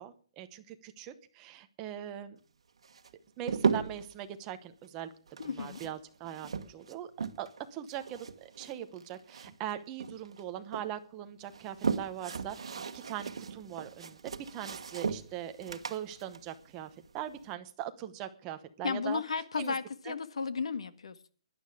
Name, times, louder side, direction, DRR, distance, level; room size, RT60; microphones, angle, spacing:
voice 1, 0.0-2.4 3.4-5.1 5.5-19.2 19.6-19.7 20.0-20.2, right 11 dB, 15° right, 0.9 m, -41 dB
sound 1, 2.8-4.1 5.3-7.6 7.9-9.7 10.0-10.9 11.4-17.5, right 5 dB, 65° right, 1.5 m, -36 dB
voice 2, 5.4-5.8 18.8-21.3, left 5 dB, 75° left, 1.7 m, -34 dB
16.0 x 11.5 x 4.9 m
hypercardioid pair, 180°, 3 cm